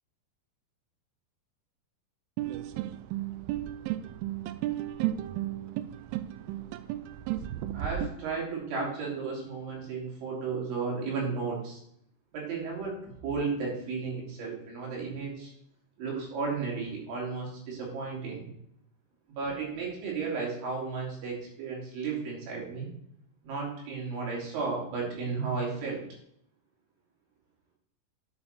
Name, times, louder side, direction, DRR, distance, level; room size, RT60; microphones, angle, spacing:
sound 1, 2.4-8.1, right 13 dB, 85° right, 3.0 m, -34 dB
voice 1, 7.7-11.8 12.3-15.5 16.0-18.5 19.3-22.9 23.4-26.0, right 4 dB, 65° right, -3 dB, 5.3 m, -34 dB
10.5 x 7.8 x 4.4 m, 0.72 s
omnidirectional pair, 5.9 m